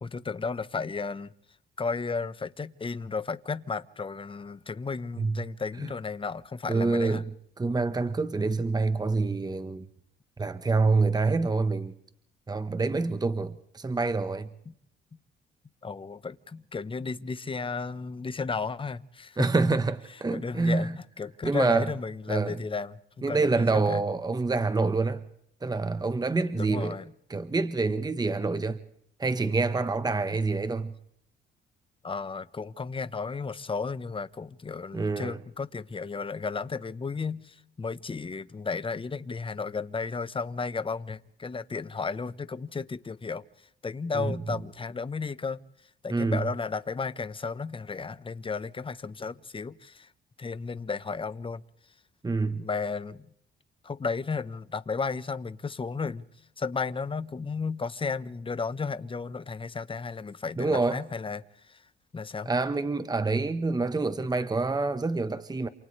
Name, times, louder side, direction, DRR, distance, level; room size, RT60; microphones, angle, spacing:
voice 1, 0.0-1.3 1.8-7.2 14.7-14.8 15.1-15.2 15.8-19.5 20.3-24.0 26.5-27.1 32.0-45.6 46.0-50.1 50.4-51.6 52.5-53.3 53.8-56.2 56.6-61.8 62.1-62.5, left 4 dB, 25° left, 1.1 m, -34 dB
voice 2, 6.7-7.2 7.6-9.9 10.4-11.9 12.5-14.5 19.4-20.9 21.4-21.9 22.3-22.6 23.2-25.2 25.6-26.9 27.3-28.8 29.2-30.9 34.9-35.4 44.1-44.4 46.1-46.4 52.2-52.6 60.6-61.0 62.4-65.7, right 3 dB, 20° right, 1.2 m, -26 dB
28.5 x 28.0 x 3.3 m
cardioid pair, 90°, 20 cm